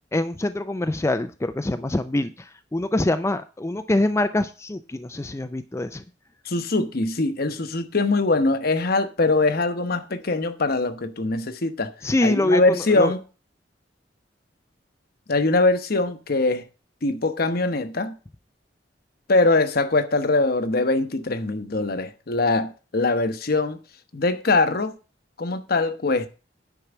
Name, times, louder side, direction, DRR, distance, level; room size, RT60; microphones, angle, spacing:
voice 1, 0.1-6.0 12.0-13.1, left 1 dB, 15° left, 0.4 m, -24 dB
voice 2, 6.4-11.9 12.2-13.2 15.3-16.6 17.0-18.1 19.3-23.8 24.1-24.9 25.4-26.3, left 3 dB, 55° left, 1.0 m, -22 dB
9.9 x 4.7 x 7.1 m
head